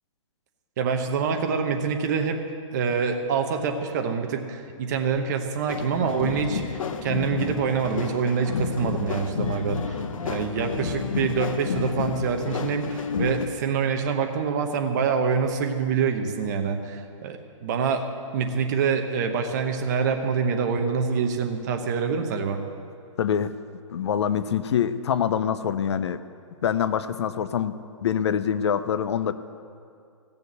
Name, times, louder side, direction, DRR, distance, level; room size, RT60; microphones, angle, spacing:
voice 1, 0.8-2.4 2.7-10.0 10.2-18.1 18.3-22.6, right 6 dB, 35° right, 5 dB, 1.0 m, -26 dB
sound 1, 5.7-13.5, left 6 dB, 75° left, 0.9 m, -30 dB
voice 2, 23.2-23.5 23.9-26.2 26.6-27.8 28.0-29.3, left 8 dB, 55° left, 13 dB, 0.5 m, -25 dB
16.0 x 7.0 x 8.1 m, 2.4 s
hypercardioid pair, 165°, 17 cm